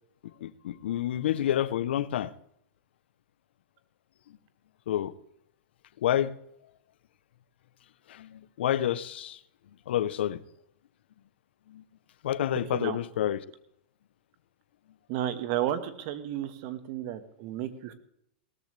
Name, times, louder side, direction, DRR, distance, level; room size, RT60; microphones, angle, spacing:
voice 1, 0.2-2.3 4.9-5.1 6.0-6.3 8.1-9.4 9.9-10.4 11.7-11.8 12.2-13.4, left 11 dB, 80° left, 0.7 m, -29 dB
voice 2, 15.1-17.9, right 11 dB, 45° right, 1.4 m, -32 dB
17.5 x 13.5 x 3.3 m
supercardioid pair, 150°, 6 cm